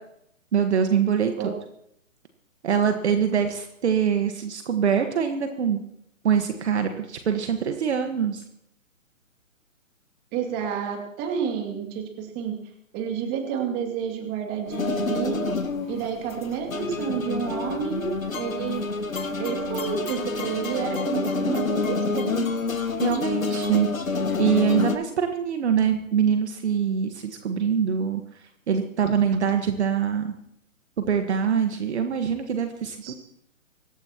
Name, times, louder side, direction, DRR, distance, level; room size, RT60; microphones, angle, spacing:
voice 1, 0.5-1.5 2.6-5.8 6.2-8.4 23.0-28.2 28.7-30.3 31.0-33.1, right 7 dB, 55° right, 6 dB, 1.5 m, -24 dB
voice 2, 10.3-12.6 12.9-15.4 15.9-18.8 19.4-22.5 33.0-33.1, right 7 dB, 25° right, 2 dB, 2.5 m, -30 dB
sound 1, 14.7-25.0, left 3 dB, 85° left, 1.5 m, -28 dB
25.0 x 13.5 x 3.0 m, 0.74 s
figure-of-eight pair, 140°, 40 cm